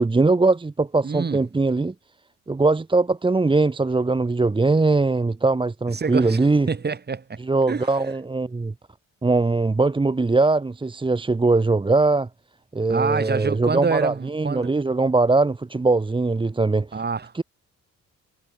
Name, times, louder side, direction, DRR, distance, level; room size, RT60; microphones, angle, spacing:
voice 1, 0.0-1.9 2.5-6.7 7.4-8.7 9.2-12.3 12.7-17.0 17.3-17.4, right 3 dB, 15° right, 1.2 m, -21 dB
voice 2, 1.0-1.4 5.9-6.4 6.7-7.4 7.7-7.9 12.9-14.7 16.9-17.3, right 5 dB, 35° right, 4.3 m, -26 dB
cardioid pair, 90°, 30 cm